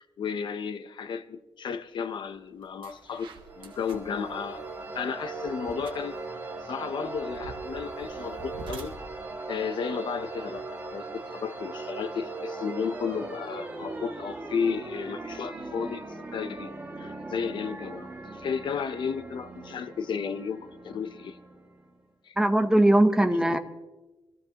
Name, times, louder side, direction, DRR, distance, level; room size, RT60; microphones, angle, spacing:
voice 1, 0.0-3.3 3.6-4.6 4.9-6.2 6.6-8.9 9.5-16.0 16.3-16.7 17.0-21.4 22.2-22.4 23.3-23.6, left 6 dB, 60° left, 12 dB, 0.7 m, -33 dB
sound 1, 2.1-2.2 2.6-10.9, right 4 dB, 65° right, 1.7 m, -48 dB
sound 2, 3.4-22.0, right 3 dB, 20° right, 1.9 m, -39 dB
voice 2, 22.4-23.6, right 1 dB, 5° right, 8 dB, 0.7 m, -20 dB
24.0 x 14.5 x 2.9 m, 1.1 s
wide cardioid pair, 170°, 9 cm